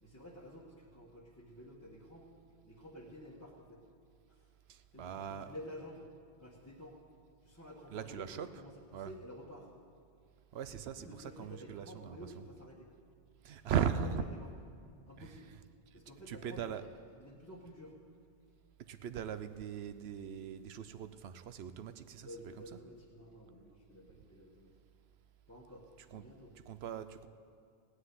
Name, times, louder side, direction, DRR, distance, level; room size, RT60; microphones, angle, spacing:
voice 1, 0.0-2.3 2.6-3.8 4.3-4.5 4.9-6.1 6.4-7.0 7.4-9.7 10.7-12.9 13.6-14.0 14.3-14.5 15.1-15.6 15.9-17.9 22.2-24.8 25.5-26.5, left 1 dB, 15° left, -5 dB, 1.3 m, -51 dB
voice 2, 4.7-5.7 7.9-8.6 8.9-9.2 10.5-12.5 13.4-14.3 15.2-15.6 15.9-16.0 16.3-16.8 18.8-22.8 26.0-26.3 26.5-27.3, right 8 dB, 80° right, 12 dB, 0.9 m, -39 dB
16.5 x 6.5 x 9.4 m, 2.3 s
omnidirectional pair, 1.0 m